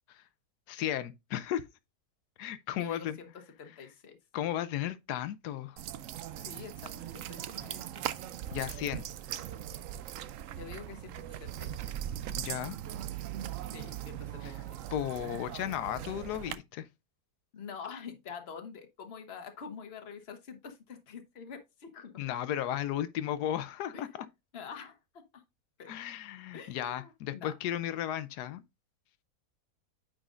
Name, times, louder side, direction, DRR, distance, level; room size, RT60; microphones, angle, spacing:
voice 1, 0.7-1.6 2.4-3.2 4.3-5.8 8.5-9.0 12.4-12.8 14.4-14.5 14.9-16.9 22.2-24.1 25.9-28.6, left 11 dB, 85° left, 1.2 m, -34 dB
voice 2, 2.8-3.3 3.6-4.2 6.4-8.2 10.5-11.8 13.7-14.8 17.5-22.2 23.9-24.1 24.5-25.4 25.8-25.9 26.5-27.5, left 6 dB, 45° left, 1.2 m, -46 dB
sound 1, 5.8-16.5, right 11 dB, 70° right, 0.8 m, -40 dB
8.9 x 5.2 x 2.4 m
omnidirectional pair, 1.7 m